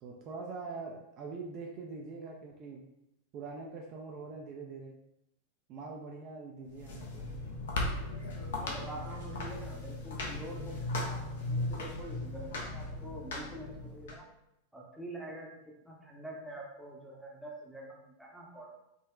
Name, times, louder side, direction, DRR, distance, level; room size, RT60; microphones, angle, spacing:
voice 1, 0.0-2.8 3.3-4.9 5.7-7.3, right 4 dB, 40° right, 0 dB, 0.3 m, -43 dB
sound 1, 6.7-14.1, left 2 dB, 60° left, 0.5 m, -37 dB
voice 2, 8.6-11.2 11.5-14.2 14.7-15.5 15.9-18.7, right 1 dB, 5° right, -3 dB, 0.7 m, -46 dB
3.6 x 2.2 x 2.3 m, 0.84 s
figure-of-eight pair, 90°, 0 cm